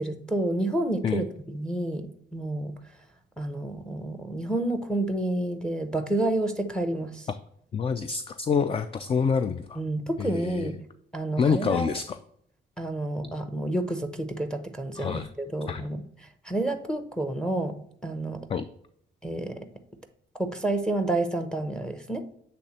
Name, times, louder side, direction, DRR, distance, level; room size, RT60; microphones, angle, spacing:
voice 1, 0.0-2.8 3.4-7.3 9.7-10.8 11.1-12.0 12.8-17.8 18.0-18.5 19.2-19.7 20.4-22.3, right 1 dB, 5° left, 8 dB, 0.7 m, -29 dB
voice 2, 7.7-9.8 10.2-10.7 11.4-12.2 15.0-15.3 15.7-15.8 18.5-18.7, left 6 dB, 30° left, 11 dB, 0.3 m, -27 dB
7.7 x 3.3 x 4.1 m, 0.69 s
cardioid pair, 90°, 20 cm